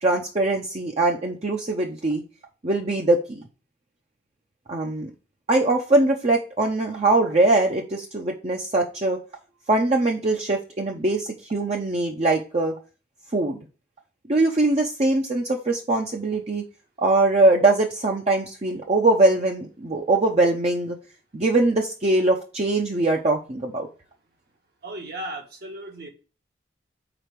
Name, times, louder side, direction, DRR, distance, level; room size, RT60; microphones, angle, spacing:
voice 1, 0.0-2.2 2.6-3.4 4.7-5.1 5.5-9.2 9.7-12.7 13.3-13.6 14.3-16.6 17.0-21.0 21.3-23.9, right 2 dB, 35° right, 1 dB, 0.8 m, -22 dB
voice 2, 24.8-26.1, right 1 dB, 60° right, 3 dB, 1.5 m, -35 dB
5.0 x 4.6 x 5.9 m, 0.34 s
head